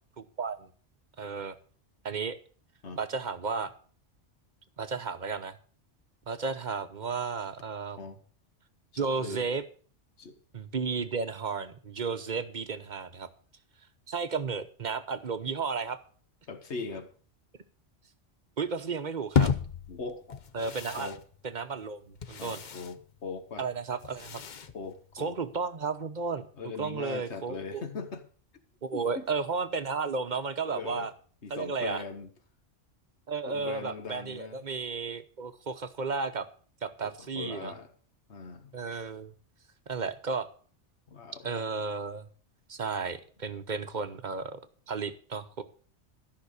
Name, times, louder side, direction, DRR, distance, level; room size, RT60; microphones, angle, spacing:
voice 1, 0.2-0.7 1.2-1.5 2.0-2.4 2.9-3.7 4.8-5.6 6.3-8.1 9.0-9.6 10.5-13.3 14.1-16.0 18.6-19.5 20.5-21.1 21.4-22.6 23.6-24.4 25.2-27.8 28.8-31.1 31.5-32.0 33.3-36.5 36.8-37.7 38.7-39.3 39.9-40.5 41.4-42.3 42.7-44.6 44.9-45.6, right 4 dB, 40° right, 11 dB, 1.0 m, -33 dB
voice 2, 9.0-9.5 10.2-10.4 16.5-17.1 19.9-20.4 21.0-21.2 22.4-23.7 24.7-25.4 26.6-28.2 28.9-29.2 30.6-31.1 31.4-32.3 33.5-34.6 37.0-37.9 38.3-38.7 41.1-41.5, left 4 dB, 70° left, 9 dB, 1.8 m, -40 dB
sound 1, 19.3-25.6, left 6 dB, 45° left, 0.8 m, -34 dB
13.5 x 5.8 x 8.2 m, 0.43 s
omnidirectional pair, 1.2 m